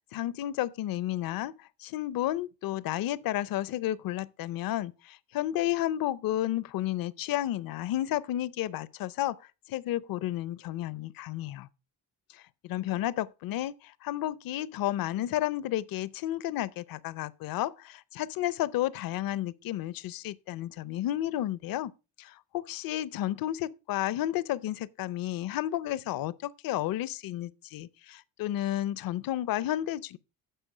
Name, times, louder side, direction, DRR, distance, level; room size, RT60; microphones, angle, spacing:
voice 1, 0.1-9.4 9.7-11.7 12.3-21.9 22.2-30.2, left 13 dB, 70° left, 0.6 m, -32 dB
10.0 x 6.8 x 4.9 m
cardioid pair, 130°, 36 cm